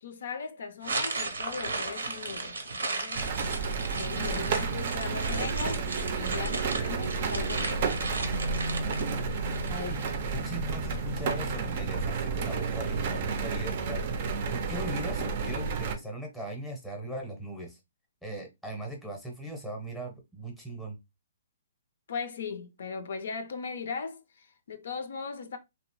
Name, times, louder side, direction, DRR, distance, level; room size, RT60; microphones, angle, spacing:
voice 1, 0.0-3.3 4.0-5.9 6.2-8.0 22.1-25.6, left 5 dB, 65° left, 0.5 m, -38 dB
sound 1, 0.8-10.1, right 3 dB, 90° right, 0.7 m, -35 dB
sound 2, 3.1-16.0, right 4 dB, 45° right, 0.5 m, -31 dB
voice 2, 9.7-10.0 10.3-14.0 14.5-17.8 18.2-21.0, right 1 dB, ahead, 0.7 m, -39 dB
2.8 x 2.0 x 2.9 m
hypercardioid pair, 155°, 0 cm